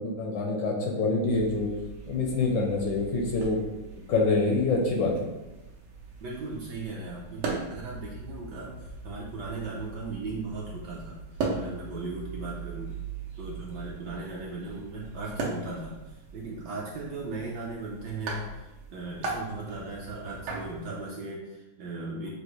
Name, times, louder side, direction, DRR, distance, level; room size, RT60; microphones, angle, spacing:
voice 1, 0.0-1.7 2.1-3.6 4.1-5.3, left 3 dB, 70° left, 0 dB, 1.2 m, -26 dB
sound 1, 1.3-21.0, right 3 dB, 85° right, 1.7 m, -39 dB
voice 2, 6.2-11.2 11.5-12.9 13.4-22.3, right 3 dB, 70° right, -3 dB, 1.0 m, -37 dB
6.3 x 2.5 x 3.0 m, 1.0 s
omnidirectional pair, 2.3 m